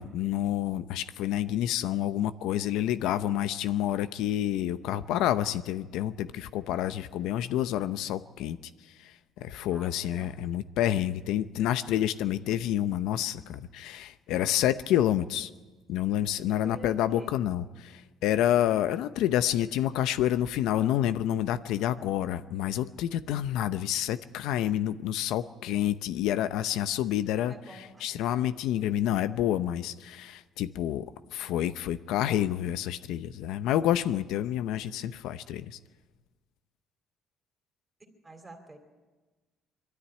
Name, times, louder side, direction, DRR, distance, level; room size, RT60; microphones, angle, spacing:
voice 1, 0.0-8.6 9.4-15.5 15.9-31.1 31.3-35.8, left 12 dB, 80° left, 12 dB, 0.7 m, -28 dB
voice 2, 9.7-10.3 16.4-17.3 27.5-28.0 38.2-38.8, right 2 dB, 15° right, 4 dB, 2.9 m, -46 dB
22.5 x 13.0 x 9.9 m, 1.3 s
cardioid pair, 145°, 0 cm